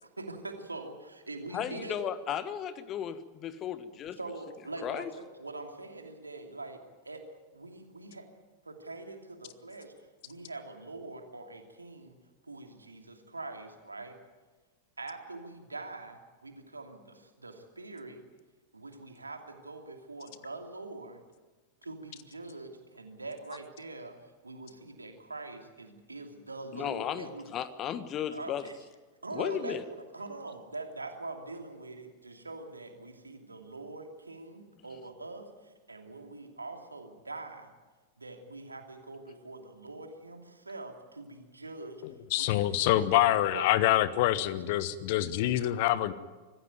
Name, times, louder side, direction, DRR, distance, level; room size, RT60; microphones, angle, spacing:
voice 1, 0.0-2.0 4.2-7.2 7.5-8.2 8.6-9.9 10.2-12.2 12.4-14.2 15.0-18.2 18.7-21.2 21.8-24.2 24.4-27.5 28.3-28.8 29.2-37.7 38.2-42.0 42.4-43.8, right 2 dB, 80° right, 4 dB, 2.8 m, -43 dB
voice 2, 1.5-4.2 4.8-5.1 26.7-28.7 29.3-29.8, left 9 dB, 30° left, 13 dB, 1.4 m, -35 dB
voice 3, 42.0-46.1, left 14 dB, 50° left, 16 dB, 1.1 m, -26 dB
24.5 x 15.0 x 9.4 m, 1.3 s
figure-of-eight pair, 90°, 0 cm